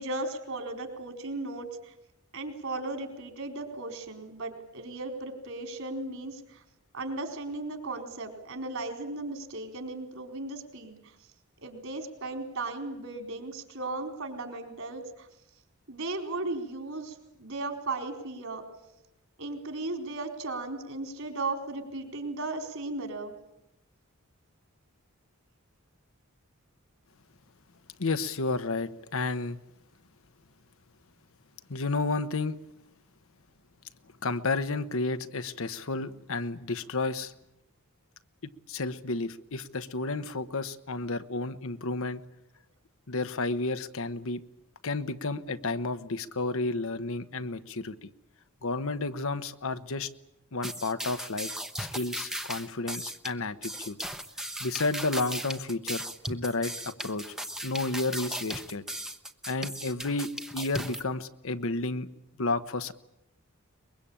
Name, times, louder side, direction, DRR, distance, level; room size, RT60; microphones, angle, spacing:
voice 1, 0.0-1.9 2.3-6.6 6.9-11.0 11.6-15.3 15.9-18.6 19.4-23.3, right 2 dB, 65° right, 5 dB, 4.4 m, -36 dB
voice 2, 28.0-29.6 31.7-32.6 34.2-37.3 38.7-42.2 43.1-44.4 44.8-48.1 48.6-50.1 50.5-54.0 54.6-57.2 57.6-58.8 59.5-62.1 62.4-62.9, left 3 dB, 65° left, 11 dB, 1.0 m, -31 dB
sound 1, 50.6-61.0, right 1 dB, ahead, 0.9 m, -37 dB
23.5 x 22.0 x 8.8 m, 0.87 s
head